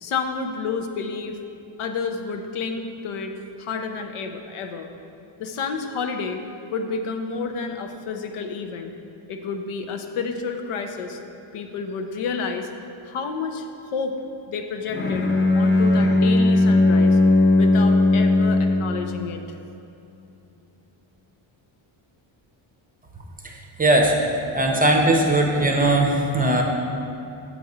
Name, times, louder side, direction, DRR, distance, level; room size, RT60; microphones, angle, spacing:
voice 1, 0.0-1.4 1.8-3.3 3.6-4.9 5.4-6.4 6.7-8.9 9.3-11.2 11.5-12.7 13.0-14.2 14.5-15.3 15.5-17.2 17.5-19.4, left 5 dB, 80° left, 6 dB, 0.7 m, -30 dB
Bowed string instrument, 14.9-19.0, left 2 dB, 25° left, 0.5 m, -17 dB
voice 2, 23.4-24.1 24.5-26.6, right 1 dB, 20° right, 1 dB, 0.6 m, -19 dB
7.3 x 4.1 x 4.8 m, 2.9 s
cardioid pair, 115°, 49 cm